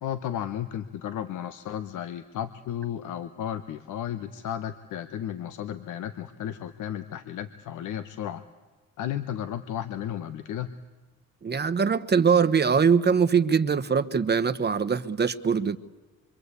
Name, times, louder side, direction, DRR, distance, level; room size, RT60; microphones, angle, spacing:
voice 1, 0.0-8.4 9.0-10.7, left 10 dB, 80° left, 10 dB, 1.2 m, -34 dB
voice 2, 11.4-15.8, right 6 dB, 35° right, 11 dB, 1.2 m, -22 dB
25.5 x 25.0 x 8.3 m, 1.3 s
cardioid pair, 90°, 30 cm